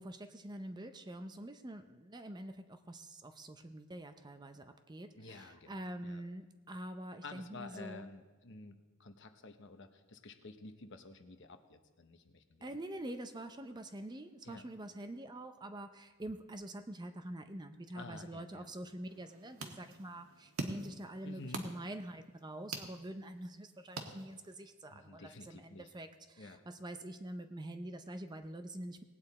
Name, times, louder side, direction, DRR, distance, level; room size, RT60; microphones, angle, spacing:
voice 1, 0.0-8.0 12.6-29.0, right 1 dB, 20° right, 8 dB, 0.5 m, -46 dB
voice 2, 5.1-5.7 6.0-6.2 7.2-12.7 14.4-14.6 17.9-18.7 21.2-21.7 24.9-25.9 26.4-26.6, left 3 dB, 55° left, 7 dB, 0.9 m, -51 dB
sound 1, 19.1-24.7, right 3 dB, 85° right, 1.3 m, -46 dB
18.5 x 8.7 x 4.2 m, 1.2 s
head